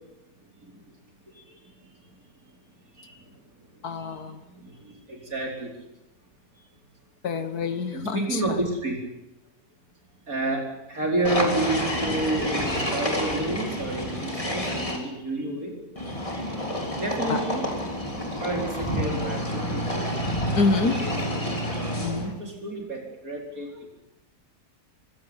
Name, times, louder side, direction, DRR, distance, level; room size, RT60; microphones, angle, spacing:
voice 1, 3.8-4.4 7.2-8.4 17.3-17.4 20.6-21.0 21.6-22.3, left 4 dB, 65° left, 10 dB, 1.9 m, -27 dB
voice 2, 4.5-5.7 7.9-9.0 10.3-10.6 10.9-15.8 16.9-17.6 18.4-20.1 20.8-21.5 22.2-23.7, right 2 dB, 55° right, 1 dB, 5.3 m, -30 dB
sound 1, 11.2-15.0 16.0-22.3, equal, 20° left, 3.6 m, -29 dB
24.5 x 15.5 x 9.1 m, 0.95 s
omnidirectional pair, 1.8 m